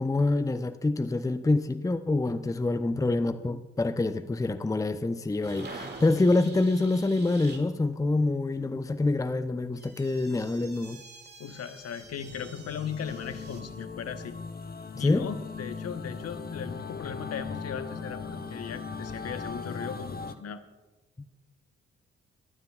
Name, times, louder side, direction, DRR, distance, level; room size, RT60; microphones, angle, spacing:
voice 1, 0.0-11.0 14.9-15.3, left 2 dB, 10° left, 11 dB, 0.7 m, -26 dB
sound 1, 5.4-7.6 9.7-13.6, right 3 dB, 30° right, 2.4 m, -46 dB
voice 2, 11.4-14.4 15.0-20.6, left 7 dB, 50° left, 10 dB, 1.1 m, -38 dB
sound 2, 12.0-20.3, left 4 dB, 30° left, 1.0 m, -39 dB
22.5 x 12.5 x 2.4 m, 1.1 s
figure-of-eight pair, 40°, 32 cm